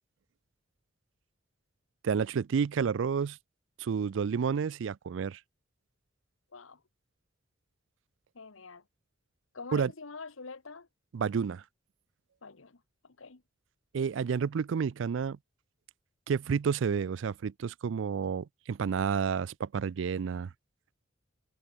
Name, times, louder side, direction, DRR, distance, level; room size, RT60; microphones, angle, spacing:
voice 1, 2.0-3.4 3.8-5.4 9.7-9.9 11.1-11.6 13.9-15.4 16.3-20.5, right 6 dB, 70° right, 0.4 m, -30 dB
voice 2, 8.3-8.8 9.5-10.9 12.4-12.8 13.2-13.4, left 4 dB, 85° left, 1.3 m, -45 dB
head